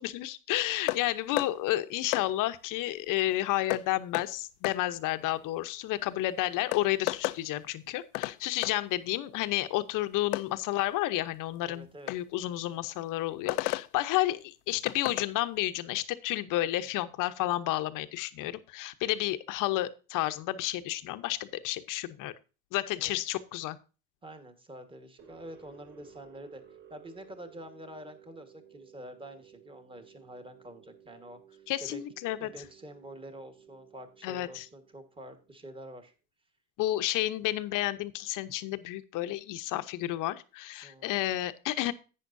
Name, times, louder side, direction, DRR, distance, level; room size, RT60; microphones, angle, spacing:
voice 1, 0.0-22.3 22.7-23.8 31.7-32.5 34.2-34.7 36.8-41.9, left 15 dB, 45° left, 11 dB, 0.9 m, -31 dB
sound 1, 0.9-1.0 1.4-1.5 2.1-2.3 3.7-3.8 4.1-4.3 4.6-4.8 6.2-6.3 6.7-7.4 8.1-8.4 8.6-8.8 10.3-10.5 12.1-12.2 13.5-13.9 14.9-15.3, left 19 dB, 85° left, 0.6 m, -31 dB
voice 2, 11.6-12.1 22.8-23.2 24.2-26.6 26.9-32.0 32.4-36.1 40.8-41.3, right 1 dB, 10° right, 7 dB, 1.4 m, -47 dB
sound 2, 25.2-36.1, right 9 dB, 30° right, 2.8 m, -57 dB
11.0 x 9.3 x 2.6 m, 0.33 s
supercardioid pair, 135°, 44 cm